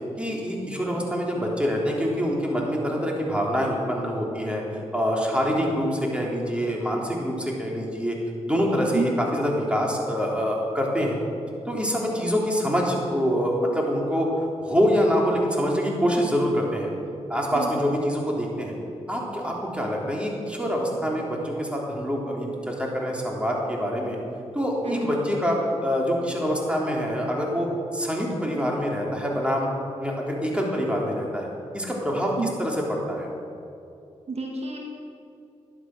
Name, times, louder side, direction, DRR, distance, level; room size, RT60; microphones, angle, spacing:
voice 1, 0.2-4.6 4.9-8.2 8.5-11.2 11.7-16.9 17.3-18.7 19.1-24.2 24.5-29.7 30.0-31.5 31.7-32.3 32.6-33.3, equal, 10° right, -2 dB, 3.5 m, -25 dB
voice 2, 34.3-34.8, right 3 dB, 60° right, 0 dB, 1.9 m, -28 dB
11.5 x 11.5 x 6.1 m, 2.7 s
cardioid pair, 55°, 12 cm